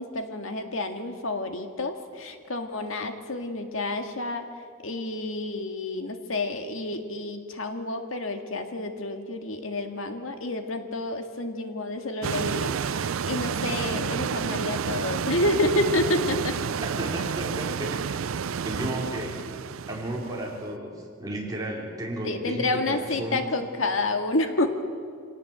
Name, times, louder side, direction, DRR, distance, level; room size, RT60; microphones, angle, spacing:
voice 1, 0.0-4.5 4.8-16.6 22.2-24.7, left 2 dB, 70° left, 6 dB, 2.0 m, -29 dB
sound 1, 12.2-20.6, right 6 dB, 75° right, 0.5 m, -30 dB
voice 2, 17.0-18.2 18.6-19.4 19.9-23.5, right 1 dB, 20° right, -3 dB, 4.8 m, -33 dB
25.0 x 18.0 x 7.7 m, 2.3 s
head